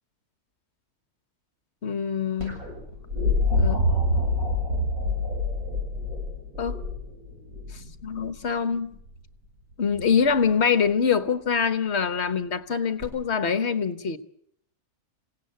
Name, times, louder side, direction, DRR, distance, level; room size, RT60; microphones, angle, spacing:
voice 1, 1.8-2.6 3.5-3.9 6.6-6.8 7.7-9.0 9.8-14.2, left 6 dB, 50° left, 11 dB, 1.4 m, -25 dB
sound 1, 2.4-8.3 9.9-10.4 13.0-13.1, left 2 dB, 65° right, 8.1 m, -26 dB
27.5 x 17.5 x 8.0 m, 0.73 s
omnidirectional pair, 1.6 m